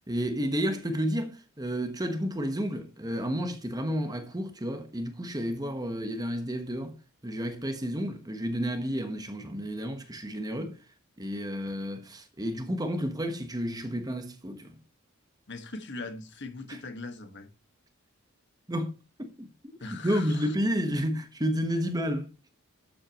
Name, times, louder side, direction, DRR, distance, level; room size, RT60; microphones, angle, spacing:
voice 1, 0.1-7.0 7.2-10.8 11.2-14.7 16.7-16.8 18.7-18.9 19.2-22.3, equal, 15° right, 1.2 m, -31 dB
voice 2, 15.5-17.5 19.8-20.5, left 3 dB, 55° left, 1.6 m, -40 dB
12.0 x 7.8 x 3.0 m
head